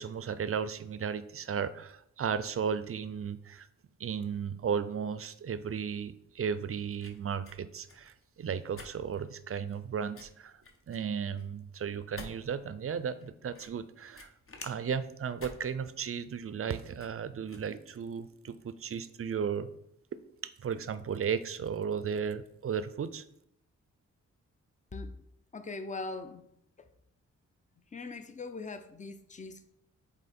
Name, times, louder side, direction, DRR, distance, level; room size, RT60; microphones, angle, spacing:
voice 1, 0.0-3.7 4.0-14.3 14.6-19.7 20.4-23.2, right 7 dB, 45° right, 0.5 m, -35 dB
sound 1, 6.2-18.3, left 3 dB, 45° left, 1.0 m, -52 dB
voice 2, 25.5-26.5 26.8-26.9 27.9-29.6, left 3 dB, 25° left, 0.6 m, -41 dB
7.7 x 3.0 x 4.2 m
cardioid pair, 75°, 31 cm